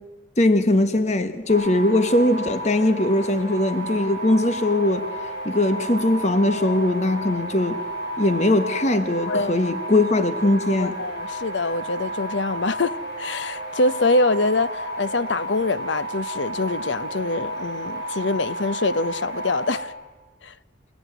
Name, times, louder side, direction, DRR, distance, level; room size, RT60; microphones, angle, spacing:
voice 1, 0.4-5.1 5.4-7.8 8.2-11.0, left 1 dB, 35° left, 1.1 m, -20 dB
sound 1, 1.5-19.8, right 1 dB, 60° left, 7.7 m, -32 dB
voice 2, 9.2-9.7 10.8-19.9 20.4-20.5, left 2 dB, 75° left, 0.9 m, -24 dB
29.0 x 17.5 x 9.3 m
head